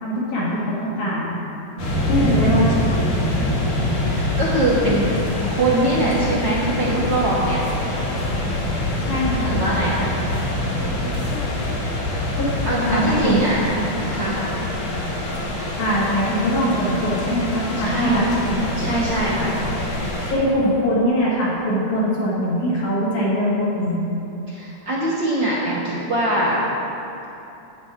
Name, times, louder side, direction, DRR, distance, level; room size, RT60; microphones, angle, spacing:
voice 1, 0.0-1.3 2.1-3.0 9.0-9.6 11.3-11.4 12.3-12.5 12.8-13.4 15.8-18.7 20.3-24.1, equal, 85° left, -8 dB, 3.8 m, -22 dB
voice 2, 0.8-1.3 1.9-2.4 4.1-7.6 9.3-10.2 10.6-10.9 12.6-13.6 14.1-14.4 17.8-18.3 18.8-19.5 24.5-26.6, right 1 dB, 50° right, -7 dB, 1.5 m, -23 dB
sound 1, 1.8-20.3, left 1 dB, 60° left, 2.6 m, -25 dB
10.5 x 9.4 x 3.7 m, 2.9 s
omnidirectional pair, 3.4 m